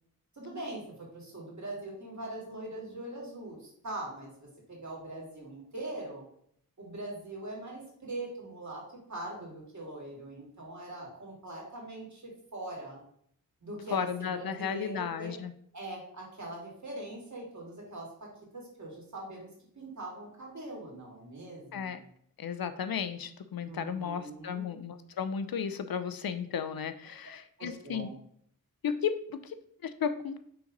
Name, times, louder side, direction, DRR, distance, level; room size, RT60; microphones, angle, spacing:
voice 1, 0.3-6.2 6.8-8.8 9.1-13.0 13.6-15.3 15.7-18.3 18.5-19.5 19.8-22.0 23.7-24.7 27.6-28.1, right 2 dB, 55° right, -3 dB, 2.6 m, -42 dB
voice 2, 13.9-15.5 21.7-22.0 22.4-28.1 28.8-29.5 29.8-30.4, left 7 dB, 90° left, 10 dB, 0.6 m, -34 dB
5.7 x 4.0 x 5.2 m, 0.66 s
wide cardioid pair, 60°, 35 cm